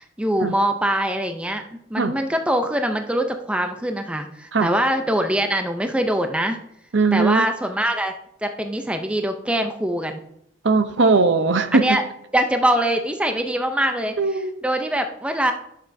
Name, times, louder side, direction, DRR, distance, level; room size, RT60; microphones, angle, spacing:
voice 1, 0.0-1.6 1.9-6.6 7.1-8.1 8.4-10.2 11.8-12.0 12.3-14.1 14.6-15.5, right 1 dB, 5° right, 6 dB, 0.4 m, -23 dB
voice 2, 6.9-7.5 10.6-12.0 14.2-14.5, right 3 dB, 60° right, 10 dB, 0.6 m, -19 dB
11.0 x 6.7 x 2.6 m, 0.74 s
head